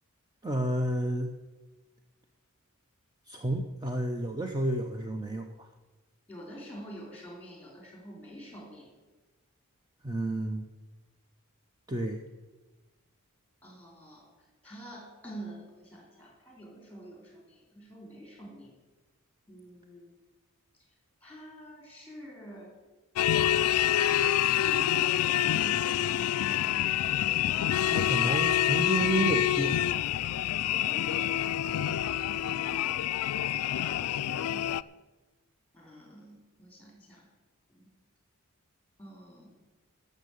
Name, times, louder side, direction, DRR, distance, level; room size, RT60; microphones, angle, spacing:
voice 1, 0.4-1.3 3.3-5.7 10.0-10.6 11.9-12.2 27.9-29.8, right 1 dB, 20° right, 4 dB, 0.7 m, -30 dB
voice 2, 6.3-8.9 13.6-14.3 14.6-18.7 19.5-20.1 21.2-22.7 23.2-23.8 24.6-27.8 30.4-31.9 32.5-33.1 33.6-34.8 35.7-37.3 37.7-37.9 39.0-39.6, right 1 dB, 5° left, 0 dB, 3.8 m, -48 dB
sound 1, 23.2-34.8, left 11 dB, 75° left, 0.3 m, -27 dB
13.0 x 6.6 x 8.4 m, 1.2 s
head